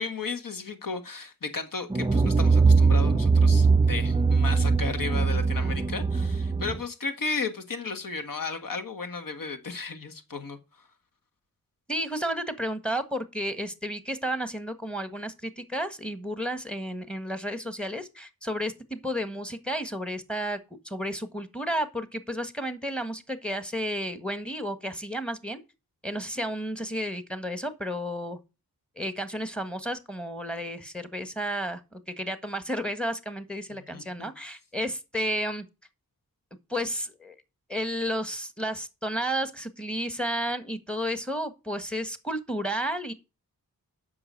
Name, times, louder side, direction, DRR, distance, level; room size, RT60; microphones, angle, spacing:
voice 1, 0.0-10.6 33.7-34.3, left 4 dB, 65° left, 1.8 m, -34 dB
sound 1, 1.9-6.8, right 4 dB, 15° right, 0.4 m, -21 dB
voice 2, 11.9-20.6 20.8-25.6 26.0-28.4 29.0-35.7 36.7-37.3 37.7-43.1, equal, 5° left, 1.5 m, -32 dB
7.9 x 6.0 x 7.6 m
wide cardioid pair, 80°, 36 cm